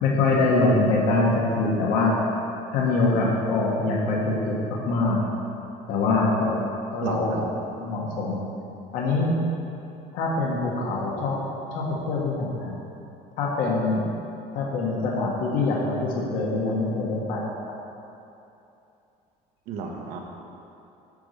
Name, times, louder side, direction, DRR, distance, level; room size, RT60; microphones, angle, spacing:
voice 1, 0.0-2.1 2.7-5.2 5.9-6.6 6.9-7.5 7.8-8.4 8.9-9.3 10.1-11.4 11.7-12.7 13.4-14.0 14.5-17.4, left 3 dB, 65° left, -3 dB, 1.6 m, -24 dB
voice 2, 7.0-7.4 19.7-20.2, right 5 dB, 70° right, 1 dB, 1.2 m, -32 dB
9.1 x 4.8 x 6.6 m, 2.8 s
cardioid pair, 165°, 15 cm